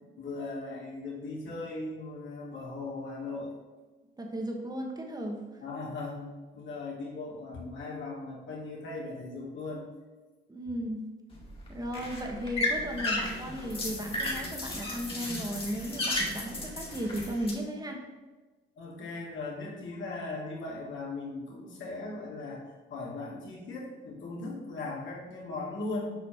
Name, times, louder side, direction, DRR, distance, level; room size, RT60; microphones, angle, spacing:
voice 1, 0.2-3.5 5.6-9.8 18.8-22.6 22.9-26.1, left 3 dB, 70° left, -3 dB, 2.6 m, -38 dB
voice 2, 4.2-5.4 10.5-11.1 11.7-18.0, equal, 20° right, 1 dB, 1.5 m, -35 dB
sound 1, 11.3-17.5, left 1 dB, 30° left, 2.2 m, -34 dB
7.5 x 5.0 x 4.6 m, 1.3 s
cardioid pair, 90°, 20 cm